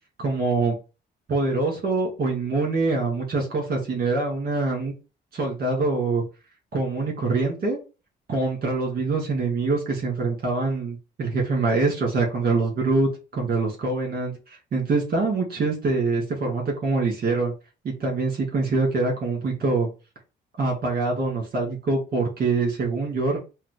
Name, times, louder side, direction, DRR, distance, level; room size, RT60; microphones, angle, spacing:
voice 1, 0.2-0.7 1.3-4.9 5.3-6.2 6.7-7.8 8.3-17.5 17.8-19.9 20.6-23.4, right 3 dB, 50° right, 0 dB, 2.0 m, -24 dB
5.6 x 2.2 x 3.3 m, 0.31 s
cardioid pair, 90°, 20 cm